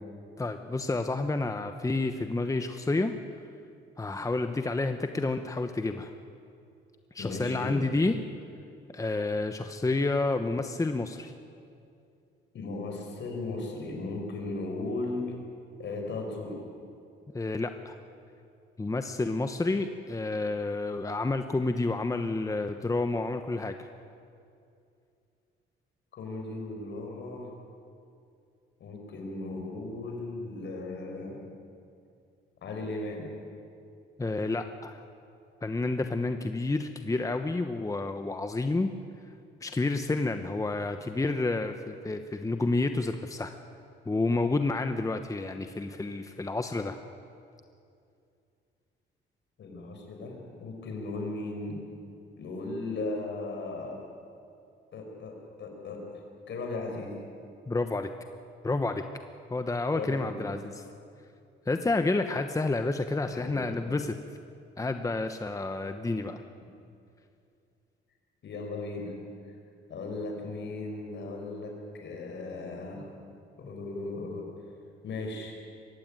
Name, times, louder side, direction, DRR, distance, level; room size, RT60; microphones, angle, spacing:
voice 1, 0.4-3.1 4.0-6.1 7.1-8.2 8.9-11.3 17.3-17.9 18.8-23.9 34.2-35.0 35.6-38.9 39.6-43.5 44.1-47.0 57.7-58.1 58.6-59.0 59.5-60.8 61.7-64.2 64.8-66.4, left 2 dB, 15° left, 7 dB, 1.0 m, -29 dB
voice 2, 7.2-7.8 12.5-15.3 15.8-16.6 26.1-27.6 28.8-31.4 32.6-33.3 49.6-51.8 52.4-54.0 54.9-57.2 59.9-60.5 63.2-63.9 68.4-69.2 69.9-71.8 72.0-73.1 73.6-74.5 75.0-75.6, left 2 dB, 65° left, 2 dB, 5.4 m, -36 dB
22.5 x 15.5 x 9.1 m, 2.5 s
cardioid pair, 90°, 20 cm